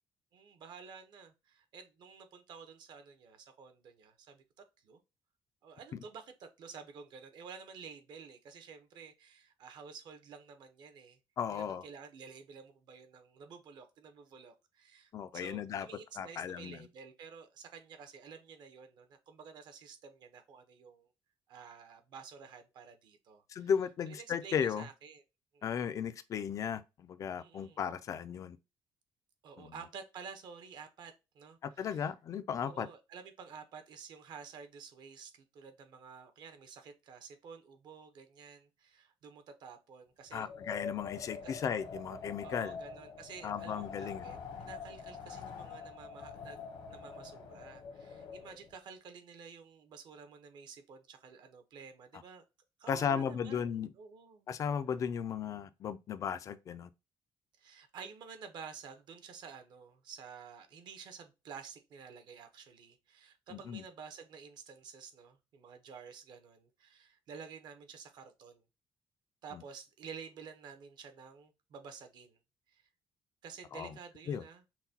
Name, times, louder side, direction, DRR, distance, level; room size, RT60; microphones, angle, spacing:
voice 1, 0.3-4.4 4.8-5.0 5.6-11.2 11.5-21.1 21.5-23.7 24.0-25.2 25.5-25.9 27.4-27.8 29.4-32.1 32.6-40.5 41.4-41.6 42.4-52.4 52.8-54.5 57.6-68.6 69.4-72.4 72.7-72.8 73.4-74.6, right 6 dB, 55° right, 0.8 m, -51 dB
voice 2, 11.4-11.8 15.1-15.9 16.2-16.9 23.5-24.9 25.6-28.6 29.6-29.7 31.6-32.9 40.3-42.8 43.4-44.3 52.9-53.9 54.5-56.9 63.5-63.8 69.5-69.6 73.7-73.9 74.3-74.4, left 7 dB, 40° left, 0.4 m, -35 dB
Wind, 40.3-48.7, left 5 dB, 75° left, 1.0 m, -45 dB
5.7 x 2.2 x 2.7 m
cardioid pair, 180°, 9 cm